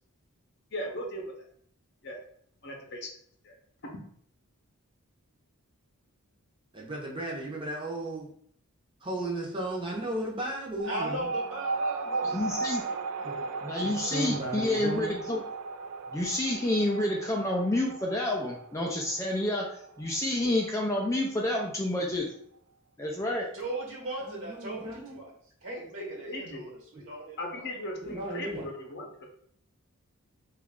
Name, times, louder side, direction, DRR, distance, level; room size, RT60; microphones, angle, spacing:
voice 1, 0.7-1.5 2.0-2.2 2.6-3.1 3.4-3.5 26.0-26.7 27.4-29.3, left 1 dB, 50° left, 1 dB, 0.7 m, -38 dB
voice 2, 6.7-8.3 9.0-11.3 13.2-13.4 13.8-15.2 24.2-25.2 28.0-28.7, right 1 dB, 25° right, -2 dB, 0.8 m, -35 dB
voice 3, 10.8-13.6 23.5-25.3 25.6-27.7, right 2 dB, 60° right, -2 dB, 1.2 m, -39 dB
sound 1, 10.8-21.7, right 3 dB, 80° right, 0.3 m, -36 dB
voice 4, 12.2-12.8 13.6-15.4 16.1-19.7 20.0-22.3 23.0-23.5, left 1 dB, 15° left, -1 dB, 0.3 m, -29 dB
3.0 x 2.4 x 3.6 m, 0.64 s
head